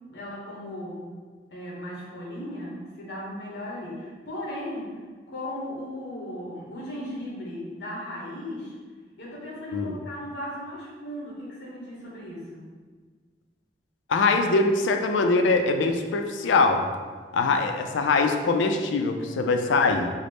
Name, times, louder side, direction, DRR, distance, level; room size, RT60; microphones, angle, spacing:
voice 1, 0.1-1.1 1.5-5.0 5.3-8.7 9.2-12.6, left 1 dB, 70° left, -5 dB, 1.1 m, -36 dB
voice 2, 14.1-16.9 17.3-20.1, left 3 dB, 90° left, 5 dB, 0.3 m, -22 dB
3.8 x 2.0 x 3.3 m, 1.5 s
head